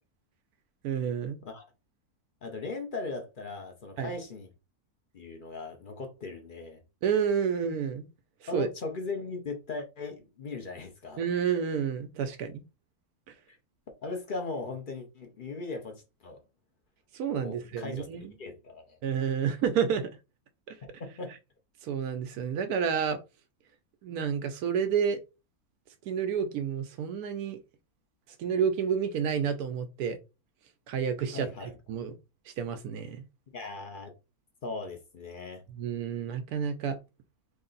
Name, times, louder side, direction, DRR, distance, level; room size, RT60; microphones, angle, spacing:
voice 1, 0.8-1.4 4.0-4.1 7.0-8.1 8.5-8.7 11.2-12.6 17.1-18.3 19.0-20.1 20.7-20.8 21.8-23.2 24.0-25.2 26.1-27.6 28.4-30.2 30.9-32.1 32.6-33.2 35.7-37.0, right 7 dB, 85° right, 1.1 m, -30 dB
voice 2, 2.4-4.5 5.1-6.8 8.5-11.2 14.0-16.4 17.4-18.1 18.4-19.0 20.8-21.4 31.3-31.7 33.5-34.1 34.6-35.6, left 3 dB, 45° left, 0.7 m, -38 dB
3.2 x 2.7 x 3.9 m
omnidirectional pair, 1.5 m